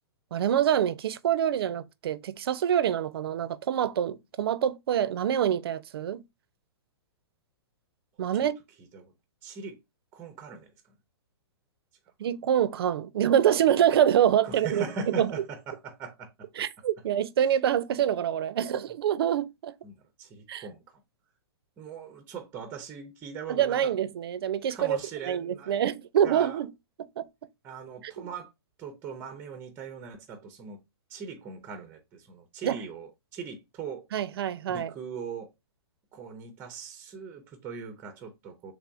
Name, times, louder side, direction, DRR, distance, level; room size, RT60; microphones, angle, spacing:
voice 1, 0.3-6.2 8.2-8.6 12.2-14.8 15.2-15.3 16.6-19.7 20.5-20.6 23.5-25.0 25.3-26.7 27.2-27.3 32.6-32.8 34.1-34.9, right 10 dB, 65° right, 0.5 m, -26 dB
voice 2, 9.4-9.8 10.1-11.0 14.4-16.5 17.4-17.5 19.8-21.0 21.8-24.0 24.7-25.8 26.2-26.6 27.6-28.5 28.8-30.8 31.1-34.1 34.7-35.5 36.1-38.7, right 5 dB, 15° right, 0.5 m, -40 dB
3.4 x 3.3 x 2.4 m
hypercardioid pair, 150°, 14 cm